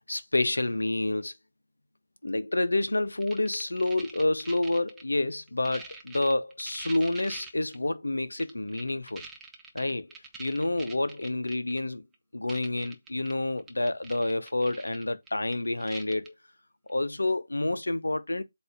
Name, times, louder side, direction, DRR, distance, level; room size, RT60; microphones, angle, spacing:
voice 1, 0.0-1.3 2.2-9.3 9.7-10.1 10.4-12.0 12.3-16.3 16.9-18.4, left 2 dB, 75° left, 0.8 m, -28 dB
sound 1, 3.2-5.0 5.5-7.8 8.4-11.8 12.1-12.2 12.5-13.3 13.6-16.3 16.9-17.0, right 4 dB, 10° right, 0.8 m, -45 dB
7.9 x 2.7 x 5.0 m
figure-of-eight pair, 150°, 0 cm